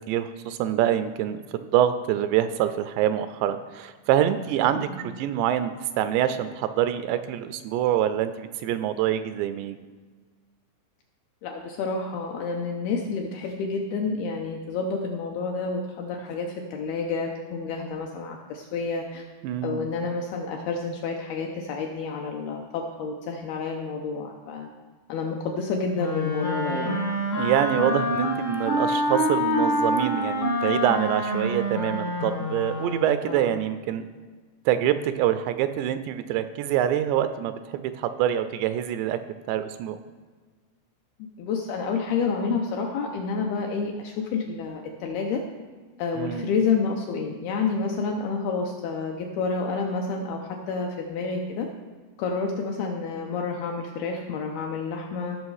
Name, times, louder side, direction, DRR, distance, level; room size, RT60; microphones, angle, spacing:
voice 1, 0.1-9.8 19.4-19.9 27.4-34.0 34.7-39.2 39.5-40.0 46.2-46.5, right 11 dB, 85° right, 11 dB, 2.6 m, -25 dB
voice 2, 11.4-19.2 19.6-24.7 25.1-27.0 33.3-33.5 41.4-45.4 46.0-51.7 52.2-55.4, left 4 dB, 85° left, 1 dB, 2.3 m, -29 dB
Wind instrument woodwind instrument, 25.9-33.3, equal, 40° left, 0.9 m, -26 dB
16.5 x 6.2 x 4.8 m, 1.5 s
omnidirectional pair, 5.2 m